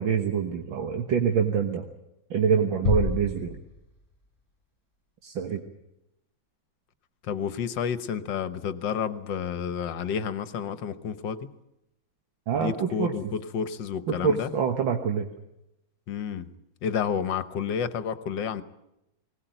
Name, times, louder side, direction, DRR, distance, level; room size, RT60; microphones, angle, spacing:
voice 1, 0.0-1.8 2.3-3.6 5.2-5.6 12.5-13.1 14.1-15.3, right 6 dB, 70° right, 4 dB, 2.1 m, -25 dB
sound 1, 2.8-4.4, left 3 dB, 20° left, 3.1 m, -30 dB
voice 2, 7.3-11.5 12.5-14.5 16.1-16.5 16.8-18.6, left 7 dB, 65° left, 13 dB, 1.7 m, -30 dB
20.0 x 19.0 x 9.1 m, 0.86 s
omnidirectional pair, 2.2 m